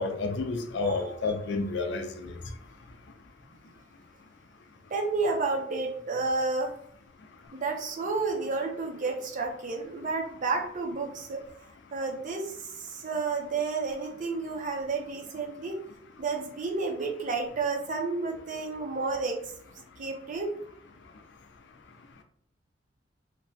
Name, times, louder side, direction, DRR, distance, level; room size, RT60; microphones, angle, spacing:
voice 1, 0.0-2.1, left 3 dB, 65° left, 6 dB, 0.4 m, -30 dB
voice 2, 0.8-1.1 3.6-3.7 4.9-6.7 7.5-11.7 11.9-15.8 16.2-19.4 20.0-20.5, right 3 dB, 45° right, 2 dB, 0.5 m, -31 dB
2.9 x 2.1 x 2.6 m, 0.65 s
head